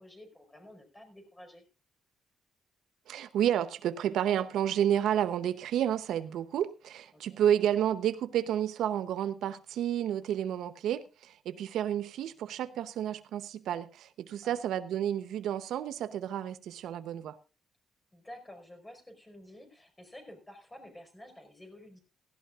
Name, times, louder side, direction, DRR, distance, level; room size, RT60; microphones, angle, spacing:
voice 1, 0.0-1.6 7.1-7.4 14.4-14.6 18.1-22.0, left 1 dB, 15° left, 5.0 m, -51 dB
voice 2, 3.1-17.4, right 10 dB, 80° right, 0.8 m, -30 dB
17.0 x 15.0 x 2.5 m
cardioid pair, 105°, 0 cm